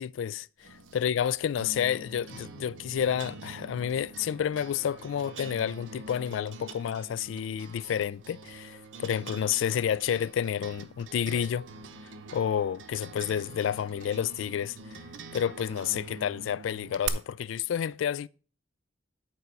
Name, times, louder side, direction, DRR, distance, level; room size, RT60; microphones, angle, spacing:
voice 1, 0.0-11.6 12.3-15.0 15.3-18.3, left 8 dB, 80° left, 0.3 m, -30 dB
sound 1, 0.6-17.1, right 5 dB, 75° right, 0.8 m, -44 dB
10.5 x 4.6 x 5.4 m
head